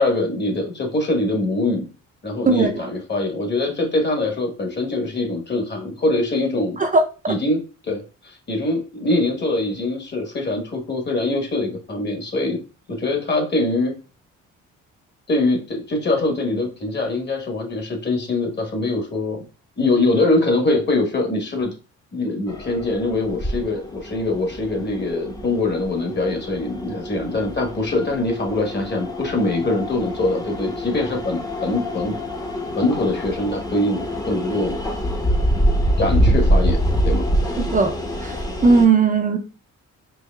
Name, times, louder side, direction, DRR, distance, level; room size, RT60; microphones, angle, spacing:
voice 1, 0.0-1.9 2.2-6.8 7.3-12.6 12.9-13.9 15.3-19.4 19.8-21.7 22.1-32.1 32.7-34.8 36.0-36.8 37.0-37.2, left 2 dB, 35° left, 1.2 m, -23 dB
voice 2, 6.8-7.4 37.6-37.9 38.2-39.4, right 4 dB, 25° right, 0.4 m, -18 dB
sound 1, 22.5-38.9, equal, 10° left, 0.7 m, -25 dB
4.6 x 2.8 x 2.2 m
cardioid pair, 90°, 30 cm